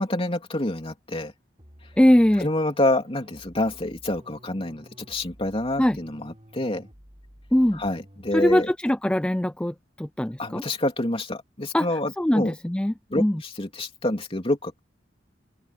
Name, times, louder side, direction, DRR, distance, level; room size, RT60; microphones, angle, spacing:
voice 1, 0.0-1.3 2.4-6.9 7.7-8.7 10.4-12.5 13.1-14.8, left 1 dB, 30° left, 3.1 m, -27 dB
sound 1, 1.6-8.7, equal, 30° right, 7.4 m, -51 dB
voice 2, 2.0-2.5 5.8-6.0 7.5-7.8 8.3-10.6 11.7-11.9 12.2-13.4, left 1 dB, 5° left, 0.4 m, -21 dB
open air
head